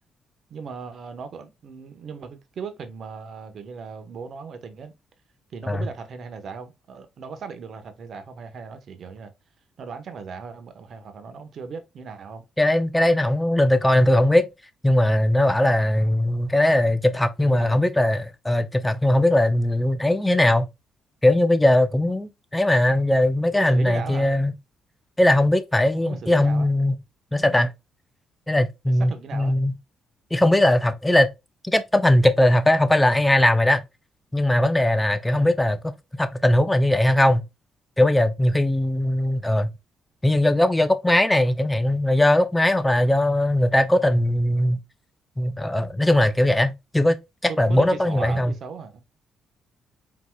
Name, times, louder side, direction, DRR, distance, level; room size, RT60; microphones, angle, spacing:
voice 1, 0.5-4.9 5.5-9.3 9.8-12.4 17.4-17.8 23.5-24.3 25.9-26.7 28.9-29.6 35.3-35.5 47.5-49.0, right 5 dB, 60° right, 1.0 m, -37 dB
voice 2, 12.6-14.5 14.8-20.7 21.2-24.5 25.2-27.0 27.3-27.7 28.5-29.7 30.3-31.3 31.6-33.8 34.3-35.9 36.2-37.4 38.0-39.7 40.2-44.8 45.4-48.5, left 1 dB, 10° left, 0.6 m, -20 dB
4.5 x 4.0 x 2.2 m
cardioid pair, 90°, 0 cm